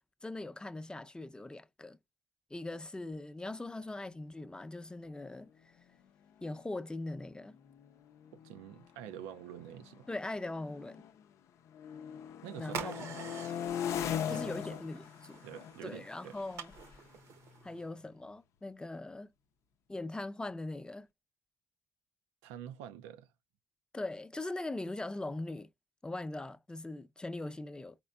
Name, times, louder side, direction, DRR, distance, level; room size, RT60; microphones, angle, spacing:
voice 1, 0.2-2.0 2.5-5.7 6.4-7.6 10.1-11.1 12.6-13.2 14.3-15.5 15.8-16.7 17.6-19.3 19.9-21.1 23.9-25.7 26.0-28.0, left 2 dB, 15° left, 0.6 m, -41 dB
sound 1, 5.9-6.0 6.3-6.6 7.4-11.3 11.7-18.3, left 9 dB, 75° left, 0.5 m, -41 dB
voice 2, 8.3-10.1 12.4-13.6 14.2-14.8 15.4-16.4 22.4-23.3, right 10 dB, 90° right, 0.4 m, -47 dB
sound 2, 12.6-17.8, right 7 dB, 75° right, 0.8 m, -47 dB
4.4 x 4.1 x 2.3 m
supercardioid pair, 55°, 5 cm